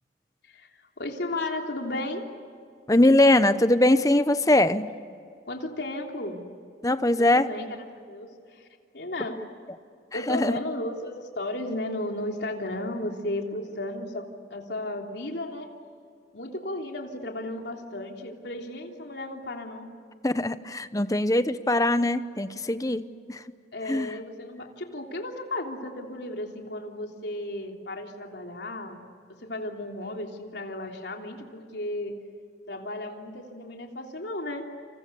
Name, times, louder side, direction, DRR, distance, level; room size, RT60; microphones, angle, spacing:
voice 1, 0.4-2.3 5.5-6.4 7.2-8.7 8.9-9.4 10.1-15.7 16.3-19.9 23.7-29.0 29.4-32.2 32.7-34.7, left 1 dB, 70° left, 2 dB, 3.3 m, -34 dB
voice 2, 2.9-4.9 6.8-7.5 10.1-10.5 20.2-23.4 23.9-24.1, left 1 dB, 20° left, 12 dB, 0.9 m, -22 dB
30.0 x 28.0 x 7.0 m, 2.3 s
head